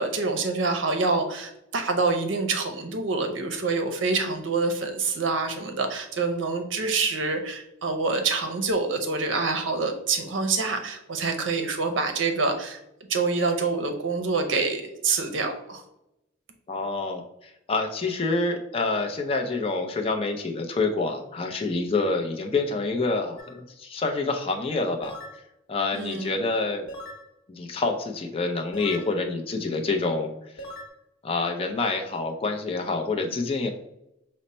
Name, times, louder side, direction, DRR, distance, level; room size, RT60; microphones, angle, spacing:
voice 1, 0.0-12.8 13.1-15.8 25.9-26.3, right 4 dB, 75° right, 5 dB, 0.6 m, -26 dB
voice 2, 16.7-25.2 25.7-26.9 27.5-30.3 31.2-33.7, left 3 dB, 30° left, 3 dB, 0.4 m, -27 dB
sound 1, 23.4-23.6 25.0-25.4 26.9-27.3 28.7-29.1 30.6-30.9, equal, 90° left, 0.9 m, -39 dB
5.2 x 2.1 x 4.1 m, 0.85 s
head